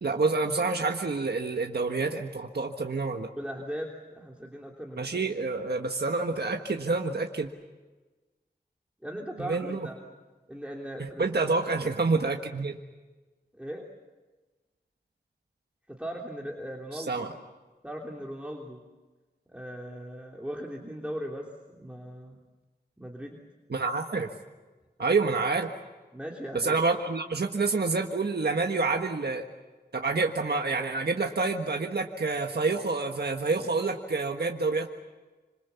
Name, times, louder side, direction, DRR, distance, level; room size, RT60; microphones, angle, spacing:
voice 1, 0.0-3.3 5.0-7.5 9.4-9.9 11.0-12.8 16.9-17.3 23.7-24.3 25.0-25.7 26.5-29.4 29.9-34.9, right 3 dB, 70° right, 3 dB, 1.6 m, -28 dB
voice 2, 3.3-5.1 9.0-10.0 10.5-11.2 13.5-13.8 15.9-17.3 17.8-18.8 19.5-22.4 23.0-23.4 26.1-26.8, equal, 5° right, -1 dB, 3.2 m, -38 dB
26.5 x 26.5 x 7.0 m, 1.2 s
wide cardioid pair, 70°, 18 cm